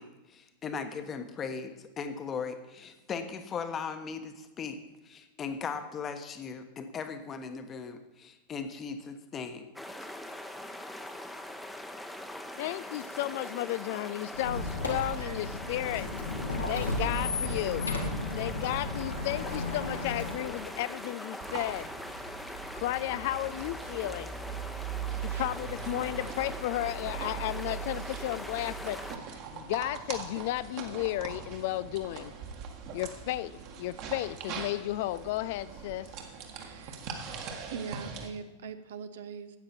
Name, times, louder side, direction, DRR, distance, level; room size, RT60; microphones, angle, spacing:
voice 1, 0.0-4.8 5.0-9.7, left 5 dB, 25° left, 8 dB, 1.1 m, -38 dB
sound 1, 9.7-29.2, left 1 dB, 5° left, 0.9 m, -42 dB
voice 2, 12.6-16.1 16.7-17.8 18.4-21.9 22.7-24.3 25.2-29.3 29.5-32.3 32.9-36.1, left 15 dB, 55° left, 16 dB, 0.3 m, -33 dB
Squeak, 14.3-20.7, left 2 dB, 80° left, 1.6 m, -34 dB
sound 2, 21.4-38.3, right 7 dB, 45° right, 1.7 m, -41 dB
voice 3, 25.1-25.5 36.5-37.0 37.7-39.6, right 6 dB, 65° right, 10 dB, 0.8 m, -42 dB
13.0 x 8.9 x 4.4 m, 1.0 s
figure-of-eight pair, 90°, 0 cm